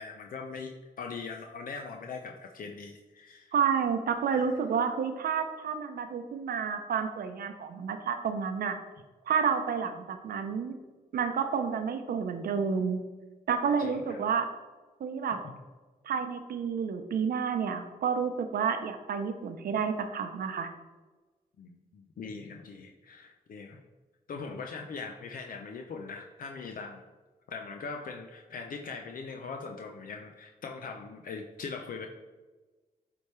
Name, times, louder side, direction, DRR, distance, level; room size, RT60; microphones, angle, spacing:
voice 1, 0.0-3.5 4.3-4.5 13.8-14.3 15.4-15.5 21.6-23.8 24.3-27.0 27.5-32.1, left 4 dB, 65° left, 3 dB, 0.6 m, -41 dB
voice 2, 3.5-8.8 9.3-10.7 11.1-13.0 13.5-14.5 15.0-15.4 16.0-20.7, right 6 dB, 75° right, 7 dB, 0.7 m, -30 dB
8.5 x 3.5 x 3.2 m, 1.3 s
cardioid pair, 80°, 15 cm